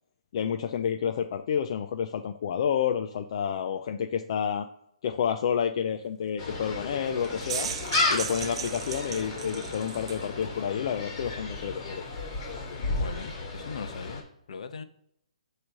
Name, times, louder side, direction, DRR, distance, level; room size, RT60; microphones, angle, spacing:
voice 1, 0.3-4.7 5.0-7.7 8.1-12.0, left 8 dB, 45° left, 6 dB, 0.5 m, -29 dB
Gull seagull, 6.4-14.2, left 3 dB, 25° left, 2.8 m, -33 dB
sound 1, 7.2-10.3, right 9 dB, 45° right, 0.4 m, -36 dB
voice 2, 12.7-14.8, left 6 dB, 60° left, 9 dB, 0.9 m, -40 dB
8.7 x 3.2 x 5.2 m, 0.76 s
hypercardioid pair, 155°, 4 cm